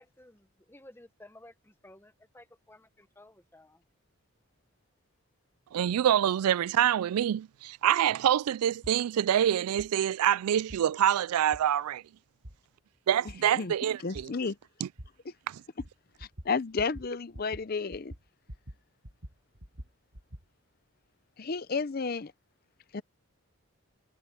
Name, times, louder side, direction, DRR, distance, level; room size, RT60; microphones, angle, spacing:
voice 1, 0.0-3.8, left 1 dB, 10° left, 1.1 m, -55 dB
voice 2, 5.7-12.0 13.1-14.3 14.8-14.9 15.5-15.6, right 10 dB, 85° right, 0.3 m, -26 dB
sound 1, 8.8-9.0 9.8-9.9 10.7-10.8 11.5-11.6 12.4-12.6 13.3-13.4 14.1-14.3 15.0-15.1 15.8-15.9 16.2-16.5 16.8-17.1 17.3-17.6 17.9-18.8 19.0-20.4, equal, 60° right, 5.8 m, -45 dB
voice 3, 14.0-14.6 16.2-18.1 21.4-22.3 22.9-23.0, left 4 dB, 40° left, 0.5 m, -32 dB
head